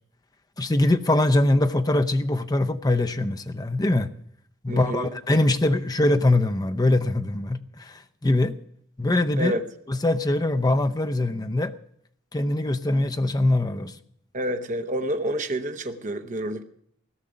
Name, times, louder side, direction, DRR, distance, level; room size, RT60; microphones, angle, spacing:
voice 1, 0.6-4.1 4.6-8.5 9.0-9.5 9.9-11.7 12.3-13.9, left 2 dB, 20° left, 0.7 m, -22 dB
voice 2, 4.7-5.1 9.4-9.6 14.3-16.6, right 1 dB, 35° right, 1.0 m, -28 dB
17.0 x 6.6 x 9.7 m
head